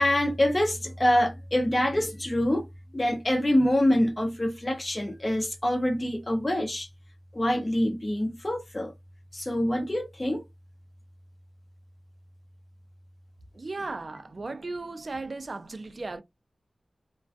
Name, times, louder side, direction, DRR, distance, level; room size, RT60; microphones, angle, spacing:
voice 1, 0.0-2.7 2.9-6.9 7.3-8.9 9.3-10.4, left 1 dB, 25° left, 0.7 m, -25 dB
voice 2, 13.5-16.2, right 3 dB, 55° right, 0.4 m, -36 dB
2.3 x 2.2 x 2.4 m
wide cardioid pair, 85°, 0 cm